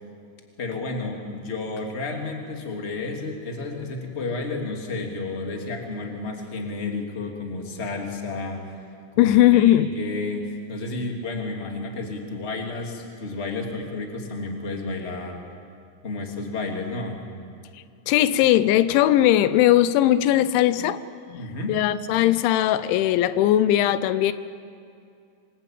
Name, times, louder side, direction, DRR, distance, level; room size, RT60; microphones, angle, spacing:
voice 1, 0.6-8.7 9.1-15.4 16.0-17.2 21.4-21.8, left 3 dB, 20° left, 2 dB, 2.2 m, -31 dB
voice 2, 9.2-9.9 18.1-21.0 21.3-21.4 21.7-24.3, left 13 dB, 85° left, 14 dB, 3.2 m, -19 dB
26.5 x 23.5 x 9.0 m, 2.5 s
omnidirectional pair, 5.3 m